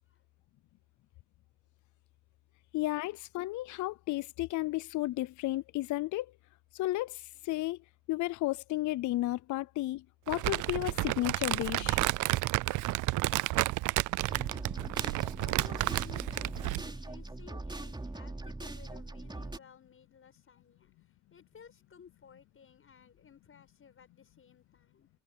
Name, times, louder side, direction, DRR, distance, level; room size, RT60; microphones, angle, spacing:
voice 1, 2.7-6.3 6.7-7.8 8.1-12.0, left 17 dB, 75° left, 0.5 m, -33 dB
Crumpling crinkling, 10.3-16.9, right 18 dB, 80° right, 0.5 m, -31 dB
sound 1, 14.3-19.6, right 2 dB, 15° right, 3.7 m, -41 dB
voice 2, 15.3-25.1, left 7 dB, 45° left, 7.0 m, -56 dB
cardioid pair, 90°, 30 cm